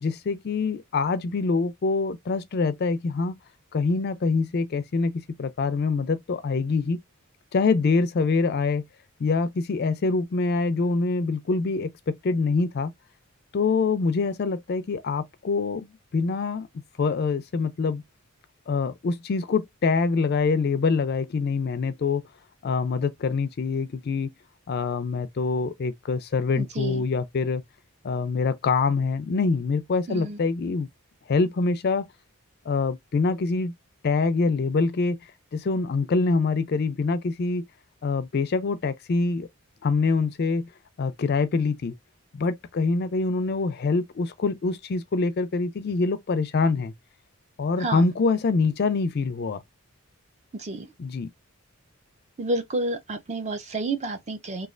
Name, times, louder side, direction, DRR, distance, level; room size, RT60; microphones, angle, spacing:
voice 1, 0.0-3.4 3.7-7.0 7.5-8.8 9.2-12.9 13.5-16.7 17.0-18.0 18.7-22.2 22.6-24.3 24.7-27.6 28.0-30.9 31.3-32.0 32.7-33.7 34.0-35.2 35.5-37.6 38.0-39.5 39.8-40.7 41.0-41.9 42.3-46.9 47.6-49.6 51.0-51.3, left 4 dB, 45° left, 0.4 m, -25 dB
voice 2, 26.5-27.0 30.1-30.4 47.8-48.0 50.5-50.9 52.4-54.7, right 2 dB, 30° right, 0.5 m, -30 dB
3.1 x 2.3 x 2.4 m
head